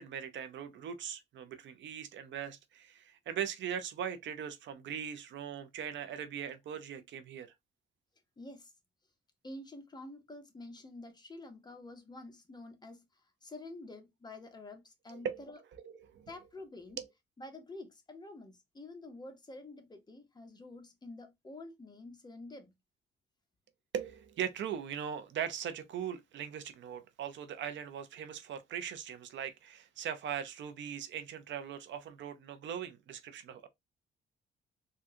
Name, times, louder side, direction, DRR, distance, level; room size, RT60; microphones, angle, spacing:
voice 1, 0.0-7.5 15.1-15.4 15.8-16.3 17.0-17.1 23.9-33.7, right 8 dB, 70° right, 0.6 m, -40 dB
voice 2, 8.4-8.7 9.4-15.6 16.3-17.0 17.4-22.7, left 2 dB, 20° left, 0.9 m, -48 dB
3.7 x 2.3 x 2.7 m
cardioid pair, 90°, 20 cm